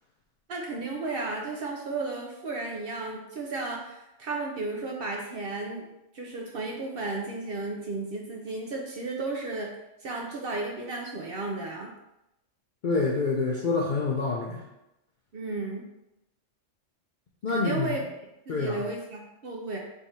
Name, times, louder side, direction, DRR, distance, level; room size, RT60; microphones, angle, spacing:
voice 1, 0.5-5.9 6.1-9.7 10.0-11.9 15.3-15.8 17.5-18.0 18.5-19.8, right 3 dB, 60° right, 0 dB, 0.7 m, -34 dB
voice 2, 12.8-14.6 17.4-17.9 18.5-18.8, left 3 dB, 60° left, -2 dB, 0.5 m, -27 dB
4.6 x 3.5 x 2.7 m, 0.91 s
omnidirectional pair, 1.4 m